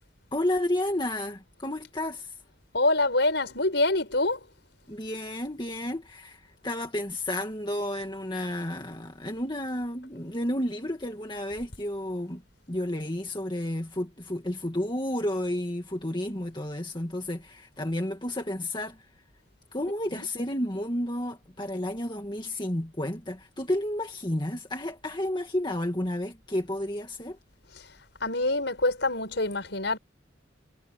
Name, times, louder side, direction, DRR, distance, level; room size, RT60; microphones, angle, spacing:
voice 1, 0.3-2.3 4.9-12.4 12.7-19.0 19.7-27.4, left 1 dB, 25° left, 2.0 m, -31 dB
voice 2, 2.7-4.4 20.1-20.3 27.8-27.9 28.2-30.0, left 2 dB, 60° left, 7.0 m, -25 dB
head